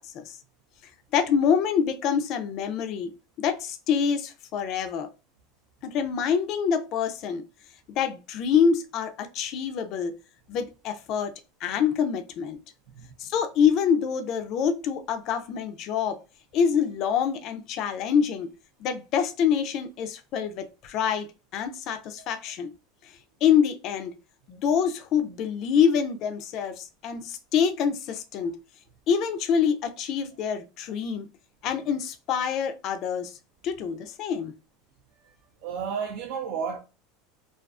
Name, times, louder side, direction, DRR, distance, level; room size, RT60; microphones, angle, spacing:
voice 1, 1.1-3.1 3.4-5.1 5.8-7.4 7.9-10.1 10.5-11.3 11.6-12.6 13.2-16.2 16.5-18.5 18.8-22.7 23.4-24.1 24.5-28.6 29.1-31.3 31.6-33.3 33.6-34.5, left 7 dB, 40° left, 0.4 m, -26 dB
voice 2, 35.6-36.8, right 6 dB, 60° right, 0.4 m, -32 dB
2.4 x 2.3 x 2.3 m
supercardioid pair, 150°, 0 cm